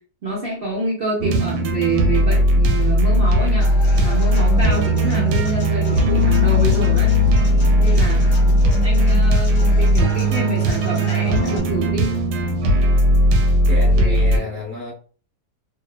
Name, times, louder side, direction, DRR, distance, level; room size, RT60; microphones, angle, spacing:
voice 1, 0.2-3.7 4.0-7.1 7.8-8.2 8.8-12.1 13.9-14.4, right 2 dB, 55° right, 0.6 m, -26 dB
sound 1, 1.2-14.4, equal, 85° right, 1.2 m, -17 dB
Human voice / Acoustic guitar, 3.6-11.6, equal, 55° left, 0.8 m, -32 dB
voice 2, 13.7-14.9, left 3 dB, 15° left, 0.4 m, -30 dB
2.8 x 2.2 x 2.3 m
omnidirectional pair, 1.7 m